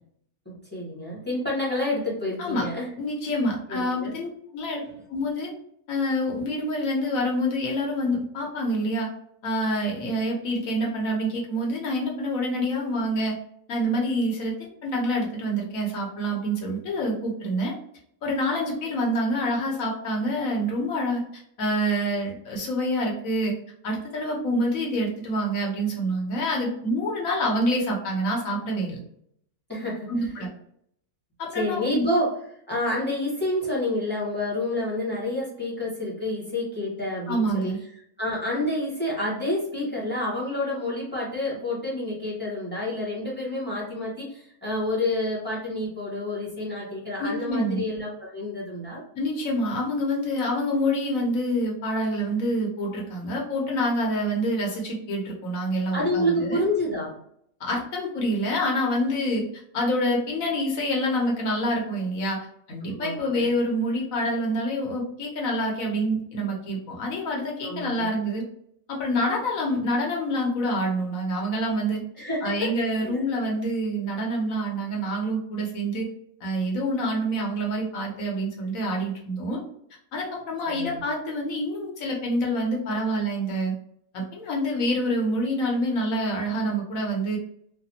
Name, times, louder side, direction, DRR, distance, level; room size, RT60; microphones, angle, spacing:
voice 1, 0.4-2.9 3.7-4.1 29.7-30.1 31.5-32.3 32.7-37.7 38.2-49.0 55.9-57.1 62.9-63.5 67.6-68.1 72.2-72.7 73.0-73.2 80.7-81.0, left 1 dB, 10° left, -6 dB, 1.0 m, -28 dB
voice 2, 3.0-4.8 5.1-5.5 5.9-9.1 9.4-13.4 13.7-17.7 18.2-23.5 23.8-29.0 30.1-30.5 31.4-32.1 37.3-37.8 47.2-47.8 49.1-56.6 57.6-59.5 59.7-68.4 68.9-72.0 72.4-76.1 76.4-79.6 80.1-83.7 84.1-87.4, equal, 65° left, -1 dB, 1.2 m, -27 dB
3.2 x 2.2 x 2.8 m, 0.69 s
omnidirectional pair, 1.6 m